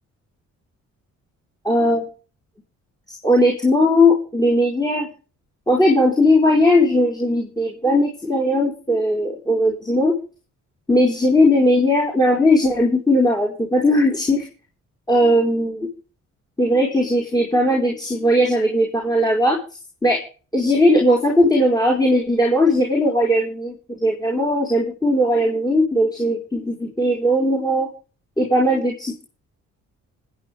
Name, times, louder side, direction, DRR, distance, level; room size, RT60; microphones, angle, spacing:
voice 1, 1.6-2.0 3.2-5.1 5.7-10.2 10.9-14.4 15.1-15.9 16.6-19.6 20.0-20.2 20.5-27.9 28.4-29.2, left 1 dB, 15° left, -1 dB, 4.7 m, -18 dB
25.5 x 9.2 x 3.6 m, 0.38 s
cardioid pair, 90°, 30 cm